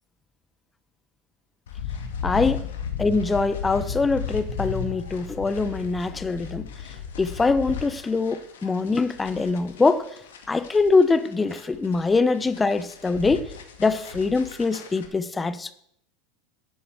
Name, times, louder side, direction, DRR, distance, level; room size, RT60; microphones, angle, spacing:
sound 1, 1.7-15.1, left 7 dB, 75° left, 2.1 m, -35 dB
voice 1, 2.2-2.6 3.0-6.7 7.2-10.1 10.5-13.5 13.8-15.7, left 3 dB, 15° left, 1.1 m, -23 dB
11.5 x 7.8 x 7.6 m
hypercardioid pair, 90°, 0 cm